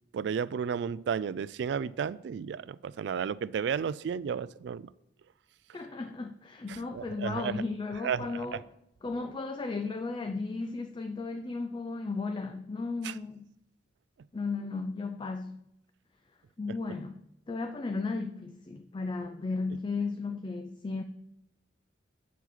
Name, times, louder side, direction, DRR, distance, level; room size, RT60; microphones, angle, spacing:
voice 1, 0.1-4.9 6.7-7.5 8.0-8.6 13.0-13.1, right 7 dB, 70° right, 18 dB, 0.3 m, -33 dB
voice 2, 5.7-8.6 9.0-13.5 14.3-15.6 16.6-17.2 17.5-21.0, left 3 dB, 25° left, 7 dB, 0.4 m, -35 dB
8.1 x 4.7 x 5.8 m, 0.80 s
head